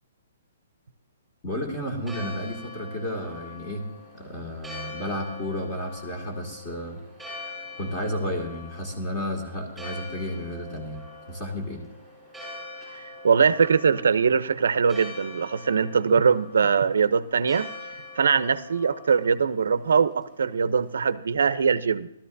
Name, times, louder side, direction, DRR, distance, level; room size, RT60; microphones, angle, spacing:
voice 1, 1.4-3.9 4.1-7.0 7.4-11.0 11.3-11.8, left 1 dB, 20° left, 1 dB, 2.2 m, -32 dB
Church bell, 1.7-21.1, left 2 dB, ahead, 5.7 m, -43 dB
voice 2, 13.2-17.7 18.2-22.1, right 6 dB, 85° right, 14 dB, 0.6 m, -22 dB
16.5 x 13.0 x 2.7 m, 0.82 s
hypercardioid pair, 175°, 0 cm